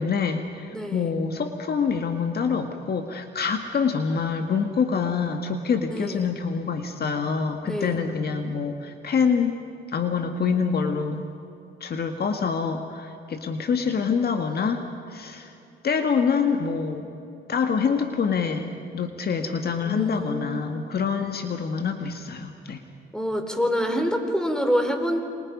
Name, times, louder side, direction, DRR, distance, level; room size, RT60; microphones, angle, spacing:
voice 1, 0.0-9.6 9.9-11.2 11.8-15.5 15.8-17.1 17.5-18.7 18.9-22.8, left 6 dB, 55° left, 5 dB, 1.9 m, -26 dB
voice 2, 0.7-1.1 5.9-6.3 7.6-8.0 19.8-20.8 23.1-25.2, equal, 5° left, 4 dB, 4.2 m, -26 dB
28.5 x 26.5 x 5.4 m, 2.7 s
cardioid pair, 90°, 20 cm